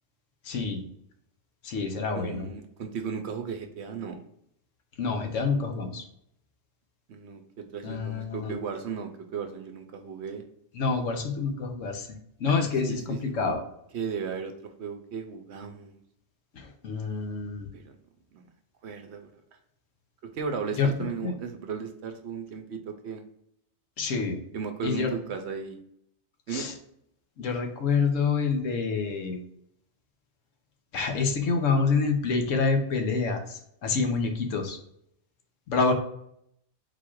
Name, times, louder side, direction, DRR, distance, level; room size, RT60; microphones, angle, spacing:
voice 1, 0.4-0.8 1.6-2.5 5.0-6.0 7.8-8.5 10.7-12.1 12.4-13.0 13.3-13.6 16.5-17.7 20.8-20.9 21.2-21.3 24.0-24.4 24.8-25.2 26.5-26.7 27.4-29.4 30.9-34.8 35.7-35.9, left 4 dB, 80° left, 4 dB, 1.2 m, -27 dB
voice 2, 2.1-4.2 7.1-10.4 12.9-13.5 13.9-16.0 17.7-18.0 18.3-18.4 18.8-19.3 20.2-23.2 24.5-25.8 26.5-26.7, right 6 dB, 65° right, 5 dB, 0.8 m, -36 dB
4.1 x 2.4 x 4.5 m, 0.72 s
omnidirectional pair, 1.3 m